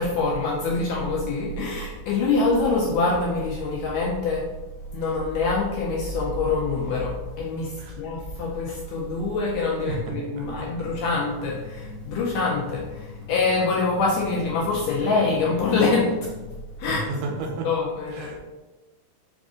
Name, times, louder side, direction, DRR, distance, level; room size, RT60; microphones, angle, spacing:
voice 1, 0.0-4.5 4.9-16.1 16.8-17.1 17.6-18.4, left 3 dB, 80° left, -3 dB, 1.6 m, -25 dB
voice 2, 9.8-10.4 16.9-17.7 18.1-18.4, right 3 dB, 90° right, 1 dB, 2.2 m, -32 dB
sound 1, 10.0-16.6, left 6 dB, 40° left, 1.2 m, -42 dB
5.0 x 2.5 x 3.6 m, 1.1 s
omnidirectional pair, 3.7 m